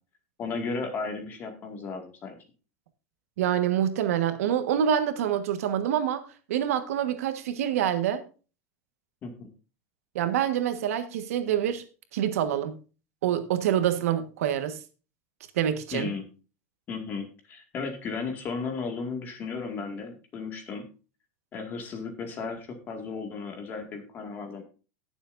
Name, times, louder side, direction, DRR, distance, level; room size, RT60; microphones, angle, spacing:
voice 1, 0.4-2.4 9.2-9.5 15.9-16.3 16.9-20.8 21.5-24.6, left 4 dB, 25° left, 2.0 m, -35 dB
voice 2, 3.4-6.2 6.5-8.2 10.1-11.8 12.1-12.8 13.2-14.8 15.5-16.1, right 10 dB, 85° right, 1.5 m, -26 dB
18.5 x 7.1 x 2.6 m
supercardioid pair, 165°, 8 cm